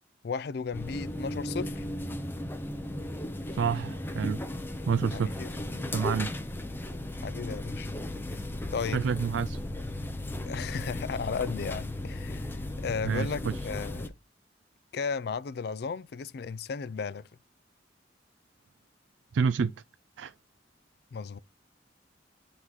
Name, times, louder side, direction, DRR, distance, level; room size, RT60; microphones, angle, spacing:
voice 1, 0.2-1.9 5.1-5.9 7.2-7.9 8.7-9.0 10.5-14.1 14.9-17.2 21.1-21.4, left 5 dB, 60° left, 0.4 m, -35 dB
sound 1, 0.7-14.1, left 1 dB, 10° left, 0.5 m, -36 dB
voice 2, 3.5-4.4 4.9-5.4 5.9-6.3 8.9-9.6 13.0-13.6 19.3-19.7 20.2-20.3, right 6 dB, 80° right, 0.3 m, -28 dB
8.0 x 3.8 x 3.1 m
head